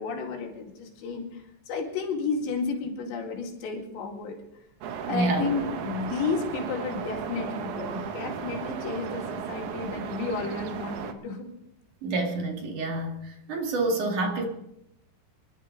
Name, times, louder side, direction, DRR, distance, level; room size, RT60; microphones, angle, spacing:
voice 1, 0.0-4.4 5.1-11.5, left 4 dB, 85° left, 1 dB, 4.5 m, -32 dB
sound 1, 4.8-11.1, right 7 dB, 70° right, 1.9 m, -35 dB
voice 2, 5.1-5.5 12.0-13.2 13.5-14.4, right 2 dB, 55° right, 2 dB, 3.2 m, -27 dB
26.5 x 11.5 x 3.8 m, 0.79 s
omnidirectional pair, 4.9 m